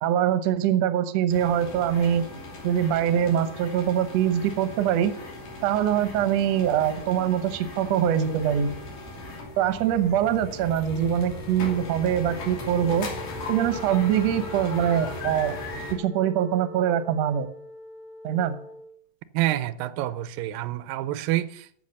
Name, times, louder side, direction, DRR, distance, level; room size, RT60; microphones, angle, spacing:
voice 1, 0.0-2.3 2.6-5.1 5.6-8.7 9.6-13.1 13.5-15.5 15.9-17.5 18.2-18.5, right 10 dB, 65° right, 1.7 m, -23 dB
sound 1, 1.3-15.9, left 2 dB, 70° left, 4.5 m, -38 dB
Wind instrument woodwind instrument, 12.6-18.9, left 1 dB, 10° left, 1.3 m, -44 dB
voice 2, 19.3-21.9, right 15 dB, 85° right, 2.3 m, -28 dB
14.5 x 5.9 x 6.5 m
omnidirectional pair, 4.0 m